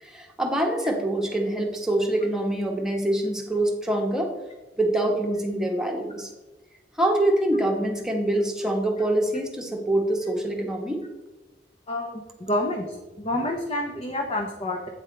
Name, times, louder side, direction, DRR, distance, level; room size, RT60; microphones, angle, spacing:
voice 1, 0.0-4.3 4.8-6.3 7.0-11.0, right 1 dB, 5° right, 1 dB, 1.3 m, -25 dB
voice 2, 11.9-14.9, left 1 dB, 35° left, 2 dB, 0.9 m, -28 dB
9.1 x 7.1 x 3.3 m, 1.2 s
head